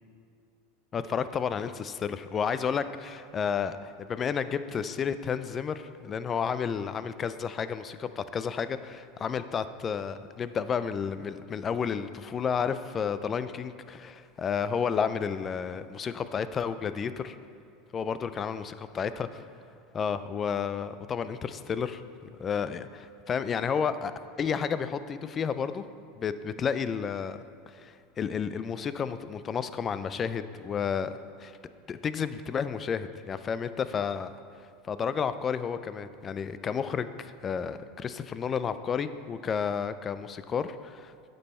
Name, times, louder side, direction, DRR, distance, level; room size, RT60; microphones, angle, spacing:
voice 1, 0.9-17.4 17.9-19.4 19.9-22.0 22.4-24.1 24.4-25.8 26.1-27.4 27.7-31.6 31.9-34.3 34.6-41.3, left 7 dB, 30° left, 13 dB, 0.3 m, -31 dB
8.8 x 5.4 x 4.3 m, 2.5 s
supercardioid pair, 115°, 0 cm